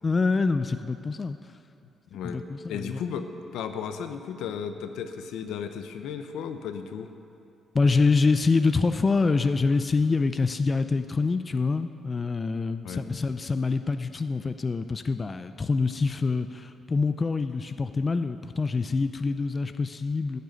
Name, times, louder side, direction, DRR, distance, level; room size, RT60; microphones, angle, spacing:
voice 1, 0.0-1.4 2.2-3.0 7.7-20.4, left 4 dB, 30° left, 10 dB, 0.4 m, -25 dB
voice 2, 2.7-3.3 3.5-7.1 12.8-13.0, left 7 dB, 85° left, 8 dB, 0.8 m, -34 dB
12.0 x 6.7 x 9.1 m, 2.6 s
cardioid pair, 90°, 0 cm